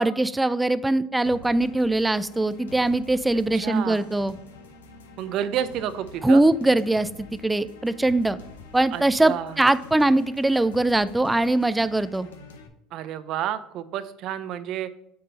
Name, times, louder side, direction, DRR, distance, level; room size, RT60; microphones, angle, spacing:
voice 1, 0.0-4.3 6.2-8.4 8.7-12.3, right 2 dB, 10° right, 14 dB, 0.4 m, -22 dB
sound 1, 1.3-12.7, left 4 dB, 90° left, 0.7 m, -46 dB
voice 2, 3.5-4.0 5.2-6.4 8.9-9.5 12.9-14.9, right 10 dB, 60° right, 13 dB, 0.5 m, -30 dB
8.6 x 3.8 x 4.1 m, 0.77 s
hypercardioid pair, 75°, 0 cm